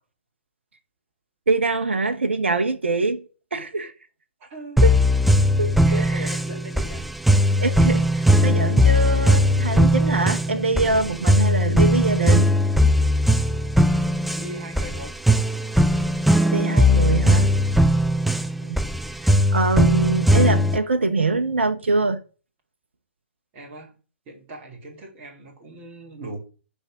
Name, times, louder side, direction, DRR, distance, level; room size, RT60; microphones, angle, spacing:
voice 1, 1.5-3.2 3.5-3.9 4.8-4.9 5.6-6.4 7.6-12.5 16.5-17.5 18.6-18.8 19.2-22.2, right 3 dB, 70° right, 1.0 m, -24 dB
voice 2, 4.4-4.8 5.7-7.1 7.5-7.6 14.3-15.2 16.4-17.1 23.5-23.9 24.3-26.4, right 1 dB, 30° right, 2.6 m, -39 dB
sound 1, 4.8-20.8, equal, ahead, 0.3 m, -19 dB
11.0 x 3.6 x 6.0 m
figure-of-eight pair, 120°, 7 cm